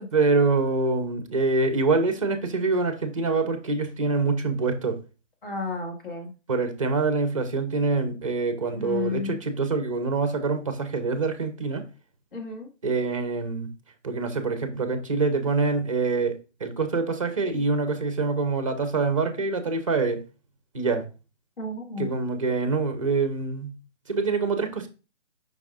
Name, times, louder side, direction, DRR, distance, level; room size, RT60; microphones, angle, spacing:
voice 1, 0.1-5.0 6.5-11.8 12.8-13.7 14.0-20.2 20.7-21.0 22.0-23.7 24.1-24.9, right 3 dB, 25° right, 0.7 m, -25 dB
voice 2, 5.4-6.3 8.7-9.4 12.3-12.7 21.6-22.1, left 3 dB, 45° left, 2.1 m, -32 dB
7.1 x 5.4 x 2.5 m
hypercardioid pair, 165°, 37 cm